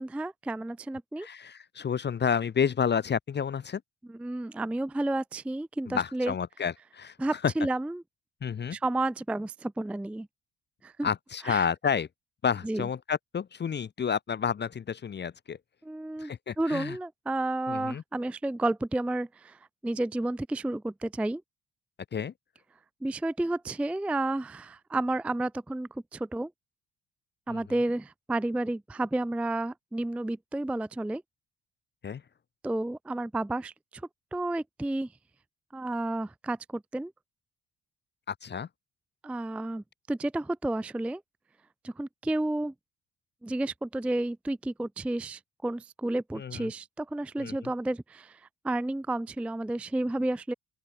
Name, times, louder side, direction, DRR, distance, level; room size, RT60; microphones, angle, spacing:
voice 1, 0.0-1.3 4.2-6.3 7.2-8.0 8.7-10.3 10.8-11.1 11.4-11.7 12.6-12.9 15.9-16.3 16.6-19.6 19.8-21.4 23.0-26.5 27.5-31.2 32.6-33.7 34.3-35.1 35.7-37.1 39.2-41.2 41.8-42.7 43.4-48.4 48.6-50.5, right 2 dB, 5° right, 0.4 m, -31 dB
voice 2, 1.2-3.8 5.9-7.5 8.4-8.8 11.0-12.1 12.4-15.6 16.2-17.0 17.7-18.0 22.1-22.3 27.5-27.6 32.0-32.2 38.3-38.7 46.3-46.7 47.4-47.7, left 7 dB, 35° left, 0.8 m, -30 dB
open air
cardioid pair, 105°, 31 cm